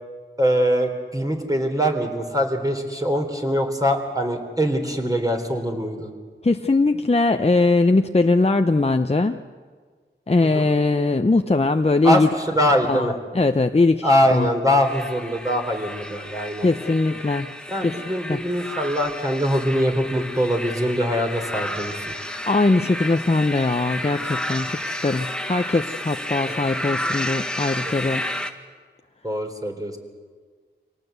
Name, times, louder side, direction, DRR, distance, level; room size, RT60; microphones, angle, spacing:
voice 1, 0.4-6.1 10.5-10.7 12.0-12.2 12.5-13.1 14.0-16.7 17.7-22.1 26.5-26.6 27.8-27.9 29.2-30.0, equal, 15° right, 3 dB, 3.8 m, -23 dB
voice 2, 6.4-9.4 10.3-12.3 12.8-13.1 13.3-14.5 16.6-17.5 17.8-18.0 18.3-18.4 22.5-28.2, left 3 dB, 30° left, 6 dB, 0.8 m, -20 dB
sound 1, 14.8-28.5, left 1 dB, 5° left, 1.6 m, -31 dB
25.5 x 18.5 x 8.2 m, 1.5 s
wide cardioid pair, 50°, 20 cm